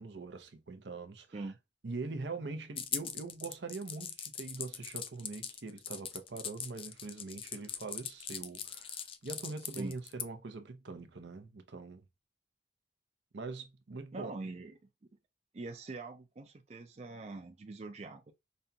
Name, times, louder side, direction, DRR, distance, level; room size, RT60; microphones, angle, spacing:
voice 1, 0.0-1.4 1.8-12.0 13.3-14.3, right 3 dB, 75° right, 0.7 m, -43 dB
sound 1, 2.8-10.3, left 8 dB, 30° left, 0.4 m, -40 dB
voice 2, 14.1-14.8 15.5-18.3, right 3 dB, 40° right, 0.4 m, -43 dB
5.3 x 2.3 x 2.7 m
head